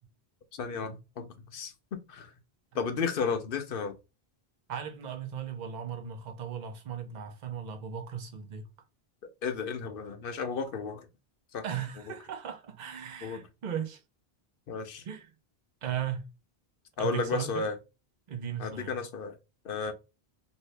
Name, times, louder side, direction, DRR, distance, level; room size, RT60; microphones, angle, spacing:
voice 1, 0.6-2.3 2.7-3.9 9.4-11.1 11.5-11.6 13.2-13.4 14.7-15.0 17.0-17.8 18.6-19.4 19.6-19.9, left 5 dB, 65° left, 0.8 m, -33 dB
voice 2, 4.7-8.7 11.6-14.0 15.0-15.3 15.8-16.2 17.0-17.7 18.3-19.0, right 8 dB, 50° right, 0.8 m, -37 dB
2.7 x 2.7 x 3.1 m
omnidirectional pair, 1.1 m